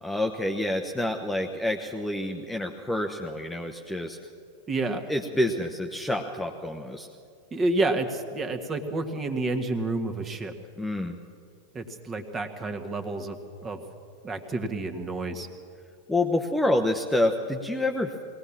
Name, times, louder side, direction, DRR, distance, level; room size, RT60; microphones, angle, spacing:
voice 1, 0.0-4.2 5.1-7.1 10.8-11.2 16.1-18.2, left 1 dB, 5° left, 3 dB, 1.1 m, -28 dB
voice 2, 4.7-5.0 7.5-10.5 11.7-13.8 14.2-15.5, right 2 dB, 20° right, 6 dB, 1.8 m, -29 dB
22.0 x 18.0 x 7.3 m, 2.2 s
figure-of-eight pair, 90°, 0 cm